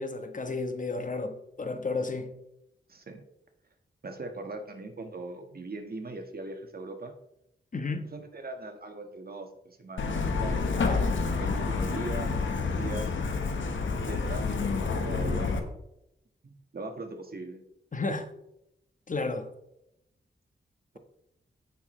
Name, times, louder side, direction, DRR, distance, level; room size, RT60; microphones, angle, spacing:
voice 1, 0.0-2.3 7.7-8.1 10.8-11.1 17.9-18.3 19.1-19.5, left 3 dB, 40° left, 1.2 m, -32 dB
voice 2, 2.9-3.2 4.0-7.1 8.1-10.1 10.4-10.6 11.4-13.1 14.0-15.6 16.4-17.6, right 2 dB, 50° right, 1.6 m, -40 dB
Truck, 10.0-15.6, left 4 dB, 80° left, 1.3 m, -29 dB
15.5 x 6.1 x 3.2 m
cardioid pair, 65°, 19 cm